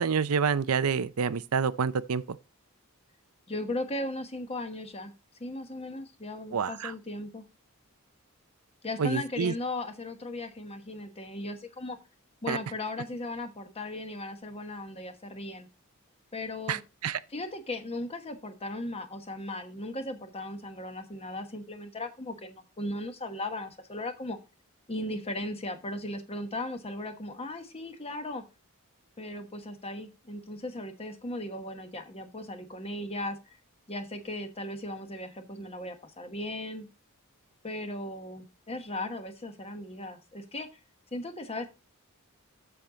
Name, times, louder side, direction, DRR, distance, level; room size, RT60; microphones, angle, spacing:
voice 1, 0.0-2.4 6.5-6.9 9.0-9.5 12.5-12.6 16.7-17.2, right 6 dB, 75° right, 0.5 m, -28 dB
voice 2, 3.5-5.1 5.4-7.5 8.8-12.0 12.4-15.7 16.3-16.8 17.3-24.4 24.9-28.4 29.2-33.6 33.9-36.9 37.6-40.7 41.1-41.7, left 2 dB, 25° left, 1.1 m, -37 dB
7.4 x 7.1 x 3.8 m
head